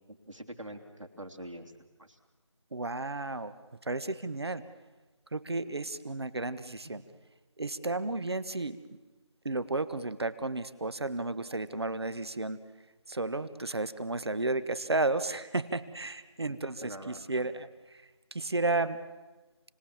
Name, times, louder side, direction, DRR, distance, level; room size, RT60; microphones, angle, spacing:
voice 1, 0.1-1.7 2.0-2.2 6.6-6.7 16.5-17.5, right 1 dB, 80° right, 3 dB, 3.4 m, -45 dB
voice 2, 2.7-3.5 3.8-4.6 5.3-7.0 7.6-8.8 9.4-12.6 13.1-18.0 18.3-19.0, right 2 dB, 55° right, 14 dB, 1.6 m, -33 dB
29.5 x 20.0 x 7.3 m, 1.2 s
figure-of-eight pair, 165°, 16 cm